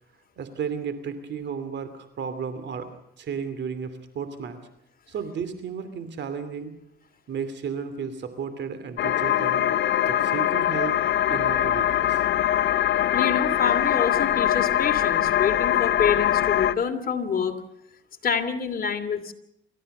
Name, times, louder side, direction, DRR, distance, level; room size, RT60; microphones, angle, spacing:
voice 1, 0.4-2.9 3.2-4.6 5.1-6.7 7.3-9.6 10.1-10.9 11.3-12.2, right 6 dB, 65° right, 11 dB, 2.8 m, -33 dB
sound 1, 9.0-16.7, left 11 dB, 65° left, 0.7 m, -22 dB
voice 2, 13.1-17.6 18.2-19.3, left 6 dB, 50° left, 6 dB, 2.7 m, -27 dB
27.5 x 14.0 x 6.7 m, 0.81 s
cardioid pair, 90°, 20 cm